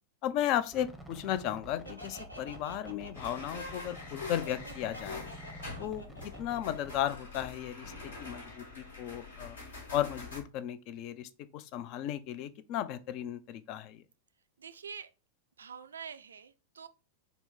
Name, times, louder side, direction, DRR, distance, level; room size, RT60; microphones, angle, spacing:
voice 1, 0.2-5.2 5.8-9.6 9.9-14.0, left 11 dB, 40° left, 0.4 m, -35 dB
sound 1, 0.7-6.9, right 1 dB, ahead, 0.7 m, -50 dB
Laughter, 1.8-7.5, equal, 90° left, 0.7 m, -49 dB
sound 2, 3.1-10.4, left 3 dB, 70° left, 1.3 m, -45 dB
voice 2, 5.5-5.9 14.6-15.1 15.6-16.9, right 6 dB, 70° right, 0.3 m, -46 dB
4.0 x 2.0 x 4.4 m
figure-of-eight pair, 90°, 0 cm